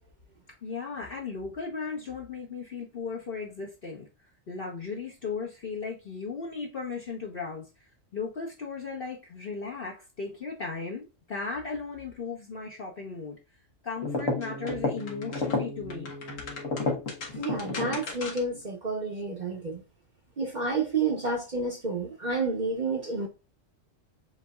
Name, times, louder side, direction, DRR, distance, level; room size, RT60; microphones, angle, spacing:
voice 1, 0.6-4.1 4.5-7.6 8.1-13.4 13.8-16.1, left 4 dB, 45° left, 1.1 m, -36 dB
sound 1, 14.0-18.6, left 3 dB, 75° left, 1.6 m, -32 dB
voice 2, 17.3-19.8 20.4-23.3, right 3 dB, 40° right, 0.9 m, -30 dB
7.6 x 2.7 x 2.3 m
omnidirectional pair, 1.4 m